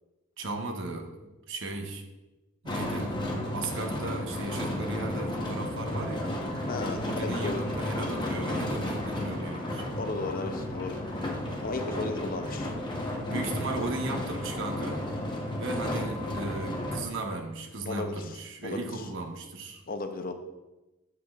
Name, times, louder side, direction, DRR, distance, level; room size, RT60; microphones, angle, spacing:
voice 1, 0.4-2.1 2.6-6.4 7.0-9.9 13.2-15.0 15.6-19.8, right 2 dB, 60° right, 3 dB, 1.0 m, -36 dB
sound 1, 2.7-17.0, left 1 dB, 20° left, 0.9 m, -33 dB
voice 2, 6.7-7.7 10.0-11.0 11.3-12.7 17.9-18.4 18.6-19.1 19.9-20.3, left 3 dB, 40° left, 7 dB, 0.6 m, -35 dB
8.3 x 7.6 x 2.4 m, 1.1 s
head